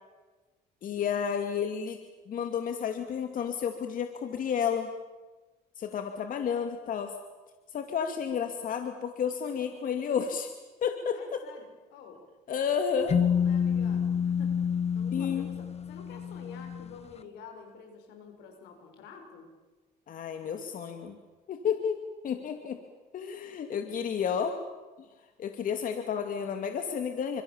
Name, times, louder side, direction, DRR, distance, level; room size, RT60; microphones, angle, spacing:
voice 1, 0.8-2.0 2.3-4.9 5.8-7.1 7.7-10.5 10.8-11.4 12.5-13.2 15.1-15.5 20.1-21.2 21.5-22.8 23.1-24.6 25.4-27.4, left 7 dB, 55° left, 6 dB, 2.5 m, -31 dB
voice 2, 11.1-12.2 13.0-14.6 14.9-19.5, left 6 dB, 85° left, 5 dB, 6.9 m, -49 dB
sound 1, 13.1-16.9, left 7 dB, 40° left, 1.3 m, -28 dB
28.5 x 26.5 x 7.4 m, 1.2 s
cardioid pair, 110°, 17 cm